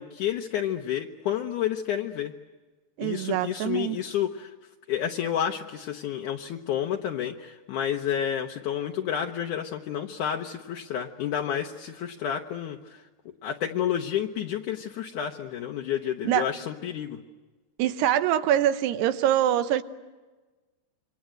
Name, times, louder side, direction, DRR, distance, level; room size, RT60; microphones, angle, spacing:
voice 1, 0.0-2.3 3.0-4.5 4.9-13.0 13.4-17.2, left 9 dB, 70° left, 1 dB, 2.0 m, -30 dB
voice 2, 3.0-4.0 16.2-16.5 17.8-19.8, right 11 dB, 80° right, 11 dB, 3.0 m, -24 dB
28.0 x 24.5 x 7.7 m, 1.2 s
omnidirectional pair, 4.8 m